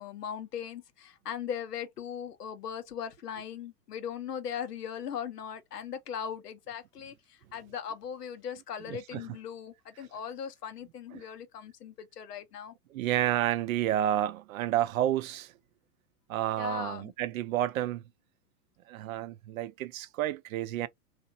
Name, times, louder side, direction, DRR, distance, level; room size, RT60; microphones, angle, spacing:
voice 1, 0.0-12.7 16.6-17.1, left 8 dB, 80° left, 0.8 m, -39 dB
voice 2, 8.9-9.2 11.1-11.3 12.9-15.5 16.3-18.0 18.9-20.9, right 12 dB, 60° right, 0.5 m, -30 dB
2.8 x 2.5 x 2.6 m
hypercardioid pair, 110°, 46 cm